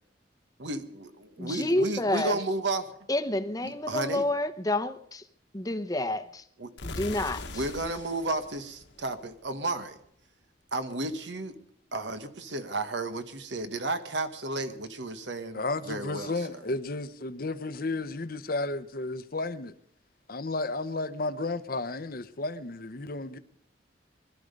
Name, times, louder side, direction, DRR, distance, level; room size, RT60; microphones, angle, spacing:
voice 1, 0.6-2.9 3.6-4.2 6.6-6.7 7.5-10.0 10.7-11.6 11.9-16.5, right 2 dB, 75° right, 1.5 m, -33 dB
voice 2, 1.4-2.4 3.1-5.2 5.5-6.4 6.8-7.6, left 1 dB, 20° left, 0.9 m, -29 dB
sound 1, 6.8-9.6, left 2 dB, 75° left, 1.5 m, -41 dB
voice 3, 15.5-19.7 20.3-23.4, left 2 dB, 50° left, 0.8 m, -33 dB
20.5 x 12.5 x 5.3 m
head